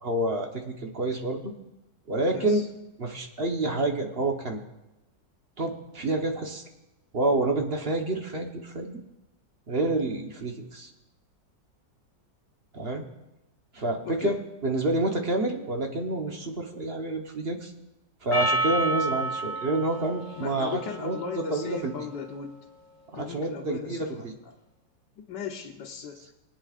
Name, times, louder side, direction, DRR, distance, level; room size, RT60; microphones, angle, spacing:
voice 1, 0.0-1.5 2.1-2.6 3.0-4.6 5.6-6.6 7.1-9.0 9.7-10.9 12.7-13.0 13.7-17.7 18.2-21.2 21.5-21.9 23.1-24.3, right 2 dB, 40° right, 3 dB, 1.1 m, -28 dB
voice 2, 2.1-2.7 14.0-14.4 20.4-22.6 23.1-24.3 25.3-26.3, left 6 dB, 70° left, -1 dB, 1.5 m, -37 dB
Percussion, 18.3-22.9, right 2 dB, 55° left, 2.3 m, -31 dB
25.0 x 9.0 x 2.5 m, 1.0 s
omnidirectional pair, 2.0 m